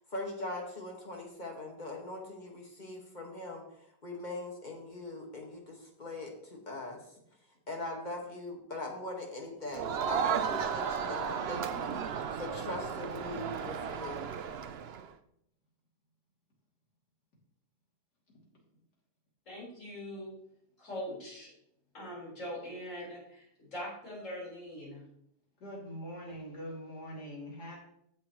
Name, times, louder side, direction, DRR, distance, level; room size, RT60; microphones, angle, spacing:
voice 1, 0.0-7.0 7.7-14.3, left 2 dB, 30° left, 0 dB, 1.7 m, -41 dB
Crowd, 9.7-15.1, right 7 dB, 65° right, 0.6 m, -34 dB
voice 2, 19.5-20.3 20.8-21.5 21.9-25.0, equal, 50° left, -6 dB, 4.7 m, -42 dB
voice 3, 25.6-27.8, equal, 75° left, -3 dB, 3.3 m, -43 dB
15.0 x 5.9 x 3.1 m, 0.73 s
omnidirectional pair, 1.7 m